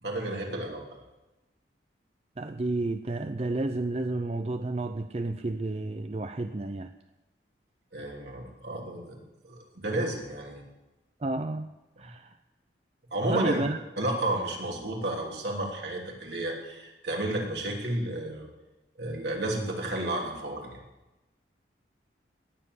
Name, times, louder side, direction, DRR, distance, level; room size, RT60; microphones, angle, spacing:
voice 1, 0.0-0.8 7.9-10.6 13.1-13.6 14.0-18.5 19.0-20.8, right 1 dB, 70° right, -1 dB, 3.2 m, -32 dB
voice 2, 2.4-6.9 11.2-11.7 12.0-12.4 13.3-13.8, right 2 dB, 35° right, 8 dB, 0.5 m, -31 dB
19.0 x 7.5 x 8.2 m, 1.1 s
head